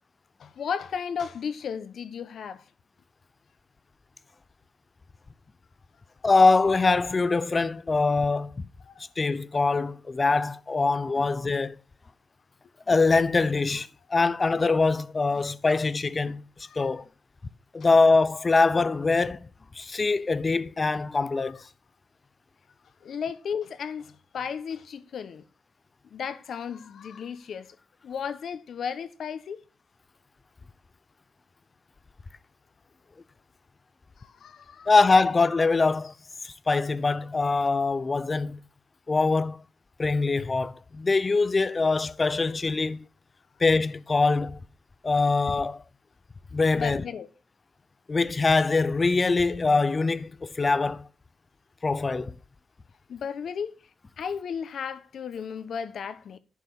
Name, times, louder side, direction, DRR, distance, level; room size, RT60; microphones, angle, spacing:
voice 1, 0.4-2.6 8.8-9.1 16.6-16.9 21.4-21.6 23.0-25.4 26.0-27.8 28.0-29.6 34.2-34.9 46.7-47.3 53.1-53.7 54.2-56.4, left 7 dB, 65° left, 1.1 m, -34 dB
voice 2, 6.2-8.6 9.2-11.8 12.9-16.4 16.8-17.0 17.7-19.5 19.8-21.6 34.9-36.1 36.4-38.6 39.1-39.6 40.0-43.0 43.6-44.6 45.0-45.8 46.5-47.0 48.1-51.1 51.8-52.3, left 3 dB, 30° left, 0.6 m, -23 dB
11.0 x 4.6 x 7.0 m
cardioid pair, 95°, 0 cm